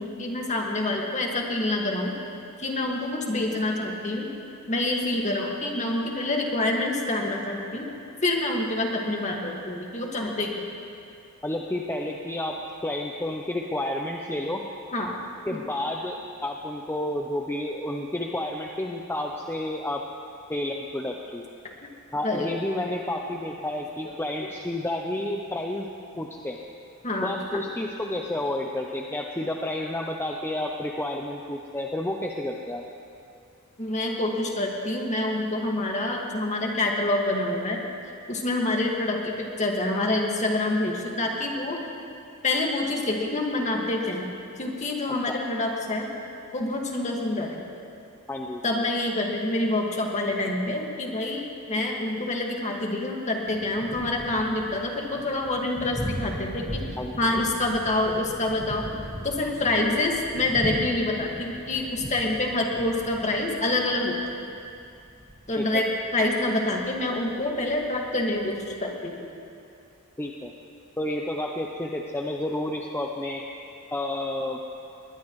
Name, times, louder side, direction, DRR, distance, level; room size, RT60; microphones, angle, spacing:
voice 1, 0.0-2.1 2.6-4.3 4.7-7.9 8.2-10.6 14.9-15.2 15.5-15.6 22.2-22.5 23.5-23.6 24.0-24.1 24.4-24.5 27.0-27.7 33.8-37.8 38.3-41.8 42.4-44.3 44.6-46.1 46.5-47.6 48.6-64.2 65.5-69.3, left 2 dB, 35° left, 0 dB, 1.9 m, -27 dB
voice 2, 11.4-12.6 12.8-14.6 15.5-20.0 20.5-21.4 22.1-25.9 26.2-26.6 27.2-32.8 45.3-45.4 48.3-48.6 57.0-57.1 65.6-65.8 70.2-70.5 71.0-73.4 73.9-74.6, left 1 dB, 10° left, 0 dB, 0.7 m, -30 dB
Thunder, 53.4-68.7, equal, 20° right, 1.6 m, -39 dB
20.5 x 20.5 x 3.2 m, 2.6 s
head